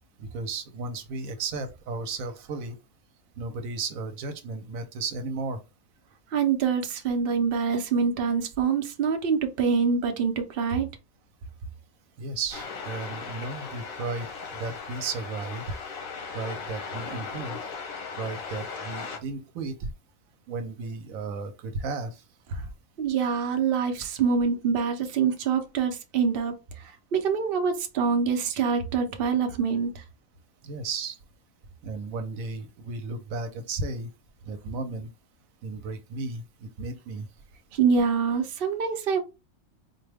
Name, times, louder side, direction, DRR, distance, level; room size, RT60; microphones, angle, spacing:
voice 1, 0.2-2.8 3.4-5.6 12.2-15.6 16.3-17.6 18.2-19.9 20.5-22.2 22.5-22.6 30.6-31.2 31.8-34.1 34.5-35.1 35.6-37.3, right 3 dB, 85° right, 1.1 m, -34 dB
voice 2, 6.3-10.9 23.0-26.5 26.8-30.0 37.7-39.2, right 6 dB, 50° right, 0.8 m, -25 dB
sound 1, 12.5-19.2, left 5 dB, 80° left, 1.4 m, -37 dB
4.2 x 2.2 x 3.3 m
omnidirectional pair, 1.4 m